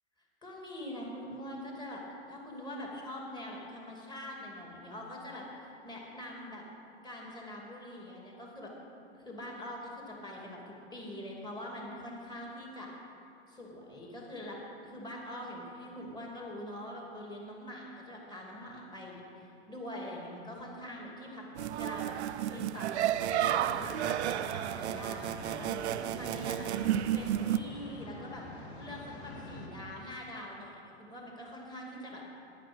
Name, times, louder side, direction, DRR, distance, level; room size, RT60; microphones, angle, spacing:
voice 1, 0.4-2.0 2.3-6.6 7.0-8.7 9.1-12.9 13.5-14.6 14.8-21.5 21.8-26.7 27.1-32.3, left 1 dB, 15° left, -2 dB, 2.5 m, -44 dB
sound 1, 21.6-27.6, right 12 dB, 85° right, 0.5 m, -32 dB
sound 2, 23.2-29.7, left 2 dB, 70° left, 2.3 m, -47 dB
10.0 x 10.0 x 6.2 m, 2.7 s
hypercardioid pair, 125°, 33 cm